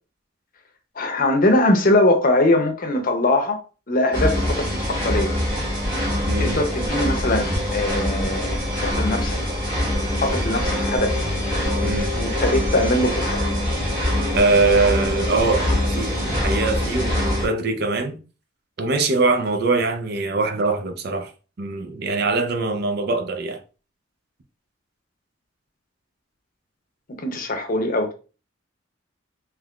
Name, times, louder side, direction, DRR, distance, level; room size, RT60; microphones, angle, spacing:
voice 1, 1.0-3.6 3.9-5.3 6.4-9.4 10.2-11.3 12.2-13.4 27.1-28.1, left 1 dB, 45° left, 0.7 m, -21 dB
sound 1, 4.1-17.5, left 1 dB, 25° right, 1.3 m, -24 dB
voice 2, 6.3-6.6 11.8-12.1 14.3-18.2 18.8-21.3 21.6-23.6, right 3 dB, 55° right, 0.5 m, -22 dB
3.7 x 3.0 x 2.3 m
head